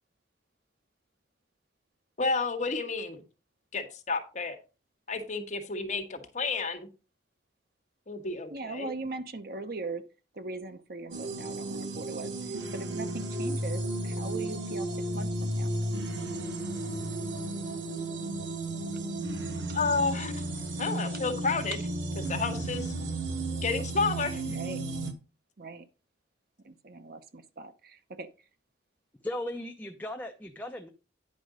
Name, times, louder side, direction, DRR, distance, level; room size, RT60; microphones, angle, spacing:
voice 1, 2.2-3.2 3.7-4.6 5.1-6.9 8.1-8.9 19.7-20.4 20.8-21.8 22.2-22.9 23.6-24.4, left 4 dB, 40° left, 1.5 m, -31 dB
voice 2, 8.5-10.1 10.3-14.9 15.1-15.7 21.7-21.8 24.5-24.9 25.6-25.9 26.6-28.3, right 3 dB, 55° right, 0.8 m, -40 dB
sound 1, 11.1-25.1, right 2 dB, 85° right, 1.4 m, -33 dB
voice 3, 29.2-30.9, left 1 dB, 10° left, 0.6 m, -37 dB
9.5 x 5.2 x 5.0 m
head